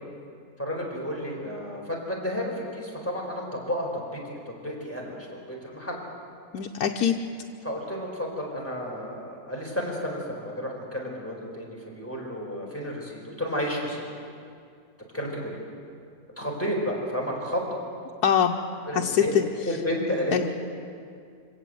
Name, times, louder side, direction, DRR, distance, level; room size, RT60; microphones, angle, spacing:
voice 1, 0.6-6.0 7.6-14.0 15.1-15.6 16.4-17.8 18.9-19.4 19.6-20.3, equal, 10° left, -2 dB, 4.6 m, -32 dB
voice 2, 6.5-7.1 18.2-18.6 18.9-19.5 20.3-20.5, left 8 dB, 85° left, 1 dB, 1.4 m, -23 dB
25.0 x 17.5 x 7.9 m, 2.3 s
omnidirectional pair, 1.7 m